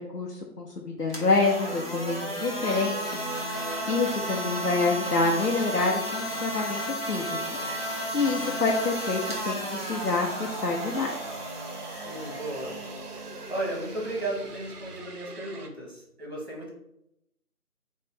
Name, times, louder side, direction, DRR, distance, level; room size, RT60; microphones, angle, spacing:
voice 1, 0.0-3.2 3.9-6.8 7.1-7.4 8.1-11.1, left 3 dB, 80° left, 0 dB, 0.8 m, -27 dB
sound 1, 1.0-15.0, equal, 40° left, 0.7 m, -34 dB
sound 2, 1.7-15.7, right 3 dB, 70° right, 0.7 m, -41 dB
voice 2, 11.9-12.8 13.5-16.7, right 1 dB, 40° right, -3 dB, 1.4 m, -35 dB
4.7 x 2.5 x 3.3 m, 0.81 s
figure-of-eight pair, 170°, 47 cm